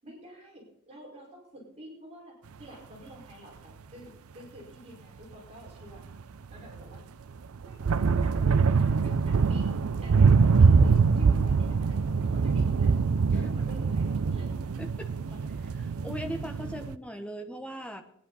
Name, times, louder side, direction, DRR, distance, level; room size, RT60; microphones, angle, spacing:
voice 1, 0.0-6.2 6.5-7.0 7.6-13.0 13.3-14.6 15.3-15.6, equal, 30° right, -3 dB, 5.0 m, -48 dB
sound 1, 5.7-5.8 6.0-6.2 6.5-7.0 7.5-16.9, right 5 dB, 80° right, 0.5 m, -24 dB
voice 2, 14.8-15.1 15.8-18.0, equal, 5° left, 6 dB, 1.2 m, -39 dB
21.0 x 10.5 x 4.1 m, 0.66 s
head